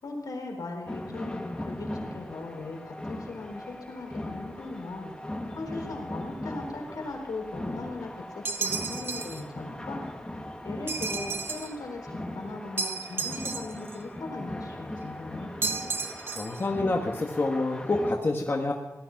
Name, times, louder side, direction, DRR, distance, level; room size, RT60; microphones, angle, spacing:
voice 1, 0.0-5.1 5.5-10.0 10.6-15.5, left 3 dB, 80° left, 1 dB, 4.0 m, -39 dB
sound 1, 0.9-18.1, left 1 dB, 15° left, 1.5 m, -39 dB
sound 2, 8.5-9.4 10.9-11.8 12.8-14.0 15.6-16.6, right 4 dB, 35° right, 1.0 m, -33 dB
voice 2, 16.4-18.7, left 2 dB, 35° left, 1 dB, 1.5 m, -27 dB
18.0 x 13.0 x 5.9 m, 1.1 s
wide cardioid pair, 145°, 6 cm